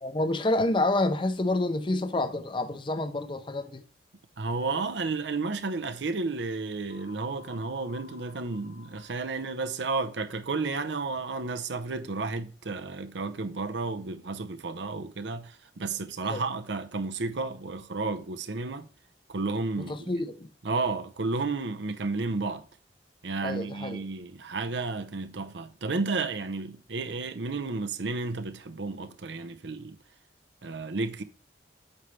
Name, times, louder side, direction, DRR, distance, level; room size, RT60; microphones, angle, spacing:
voice 1, 0.0-3.8 16.3-16.4 19.8-20.5 23.4-24.0, left 2 dB, 30° left, 0.6 m, -28 dB
voice 2, 4.4-18.9 19.3-20.1 20.6-22.6 23.2-30.0 30.6-31.2, right 3 dB, 85° right, 0.7 m, -32 dB
sound 1, 6.9-10.8, left 5 dB, 65° left, 1.8 m, -54 dB
8.2 x 5.5 x 3.2 m
head